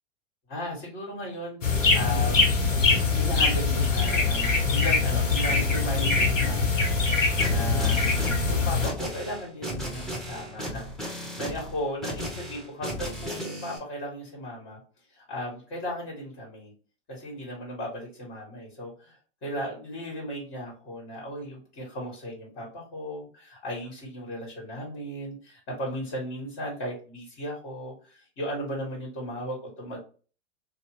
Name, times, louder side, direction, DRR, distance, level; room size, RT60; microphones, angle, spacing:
voice 1, 0.5-2.7 3.2-14.8 15.1-16.7 17.1-30.0, equal, 35° left, -2 dB, 1.5 m, -36 dB
sound 1, 1.6-8.9, left 4 dB, 85° left, 1.0 m, -23 dB
sound 2, 7.4-13.8, equal, ahead, 0.6 m, -36 dB
2.7 x 2.1 x 3.1 m, 0.38 s
hypercardioid pair, 110°, 37 cm